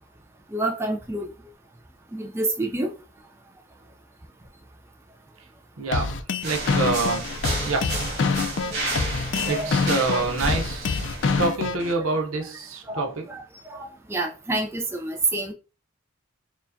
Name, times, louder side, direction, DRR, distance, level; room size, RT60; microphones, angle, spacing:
voice 1, 0.5-1.3 2.1-2.9 9.0-9.1 9.3-9.7 12.9-13.4 13.7-15.5, right 2 dB, 10° right, 0.3 m, -28 dB
voice 2, 5.8-6.2 6.4-7.3 7.7-8.0 9.4-11.0 11.4-13.3, right 3 dB, 85° right, 0.7 m, -26 dB
sound 1, 5.9-11.9, left 4 dB, 60° left, 0.4 m, -26 dB
sound 2, 6.4-11.4, right 2 dB, 55° right, 1.5 m, -31 dB
4.5 x 2.3 x 2.6 m
head